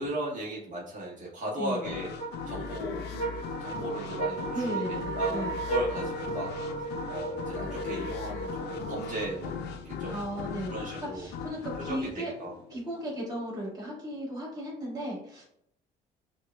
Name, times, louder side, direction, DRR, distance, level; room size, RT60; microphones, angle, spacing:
voice 1, 0.0-3.2 3.6-6.5 6.8-9.5 9.8-11.3 11.9-12.5, equal, 50° right, -5 dB, 1.3 m, -37 dB
voice 2, 1.6-1.9 4.5-5.6 10.1-12.3 12.7-15.4, equal, 20° right, -5 dB, 1.4 m, -36 dB
sound 1, 1.8-13.3, left 6 dB, 80° left, 0.5 m, -39 dB
sound 2, 2.2-9.7, right 3 dB, 40° left, 0.8 m, -35 dB
sound 3, 5.4-12.2, left 1 dB, 10° left, 0.9 m, -52 dB
6.1 x 2.4 x 2.2 m, 0.71 s
cardioid pair, 110°, 17 cm